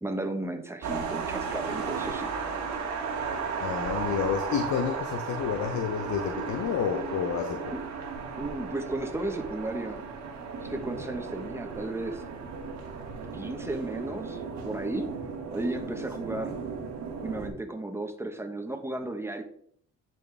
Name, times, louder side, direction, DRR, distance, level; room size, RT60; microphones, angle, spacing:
voice 1, 0.0-2.3 8.4-10.0 10.6-12.2 13.3-15.1 15.5-16.5 17.2-19.4, right 2 dB, 10° right, 5 dB, 1.2 m, -34 dB
sound 1, 0.8-17.5, right 5 dB, 70° right, 1.7 m, -35 dB
voice 2, 3.6-7.7, left 7 dB, 70° left, 6 dB, 0.8 m, -30 dB
10.5 x 4.3 x 3.4 m, 0.63 s
cardioid pair, 90°, 30 cm